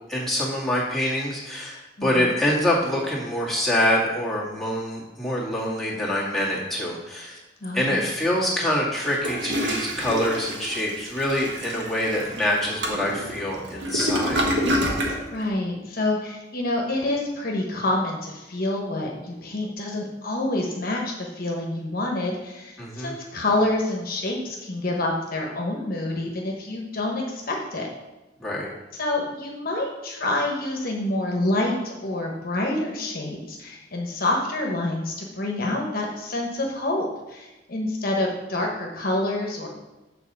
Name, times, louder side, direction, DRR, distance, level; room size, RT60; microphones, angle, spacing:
voice 1, 0.1-7.4 7.7-14.4 22.8-23.1 28.4-28.7, left 1 dB, ahead, -6 dB, 2.1 m, -25 dB
voice 2, 2.0-2.3 7.6-8.0 15.3-27.9 29.0-39.7, left 2 dB, 55° left, 0 dB, 1.1 m, -27 dB
Toilet flush, 9.0-15.2, equal, 80° right, 1.5 m, -27 dB
7.4 x 4.2 x 6.7 m, 1.1 s
head